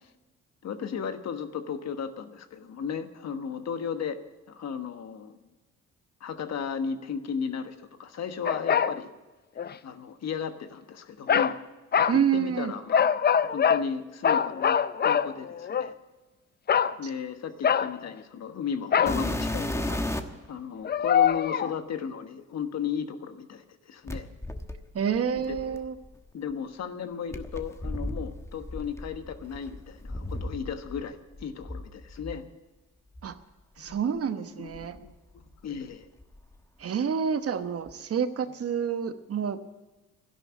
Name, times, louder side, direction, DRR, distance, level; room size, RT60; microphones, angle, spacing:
voice 1, 0.6-4.2 4.5-5.4 6.2-9.1 9.8-11.6 12.1-15.9 17.0-20.0 20.5-24.3 25.4-25.8 26.3-32.4 33.8-34.0 34.6-36.0, left 7 dB, 60° left, 9 dB, 1.3 m, -35 dB
sound 1, 8.5-9.0 9.6-9.7 11.3-11.6 11.9-12.2 12.9-13.8 14.2-15.9 16.7-17.0 17.6-18.1 18.9-19.2 20.8-21.7, left 8 dB, 35° left, 0.5 m, -24 dB
voice 2, 12.1-12.7 24.9-25.9 33.2-33.4 33.8-35.0 36.8-39.6, right 7 dB, 50° right, 10 dB, 1.1 m, -28 dB
sound 2, 19.1-20.5 21.3-21.4 24.1-26.2 27.3-31.0 31.3-32.4 33.1-33.3 33.9-34.0 34.7-35.8 36.0-36.6 37.9-38.0, left 1 dB, 10° left, 1.2 m, -35 dB
12.5 x 11.0 x 8.7 m, 1.2 s
cardioid pair, 90°, 30 cm